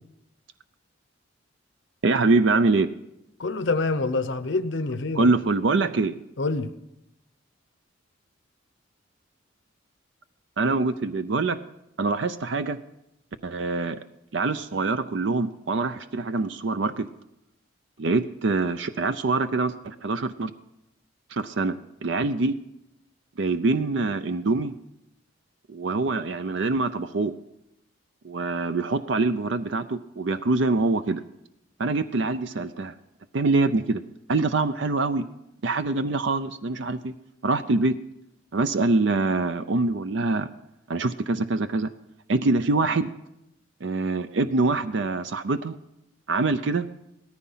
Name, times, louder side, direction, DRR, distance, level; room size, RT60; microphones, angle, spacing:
voice 1, 2.0-2.9 5.1-6.2 10.6-11.6 12.0-12.8 13.4-14.0 14.3-17.1 18.0-20.5 21.3-22.5 23.4-24.7 25.7-27.3 28.2-31.2 31.8-32.9 33.3-34.0 34.3-35.2 35.6-37.1 37.4-37.9 38.5-40.5 40.9-41.9 42.3-43.1 43.8-45.8 46.3-46.9, right 3 dB, 65° right, 11 dB, 0.5 m, -24 dB
voice 2, 3.4-5.3 6.4-6.7, left 3 dB, 65° left, 11 dB, 0.7 m, -26 dB
17.5 x 14.0 x 5.6 m, 0.85 s
head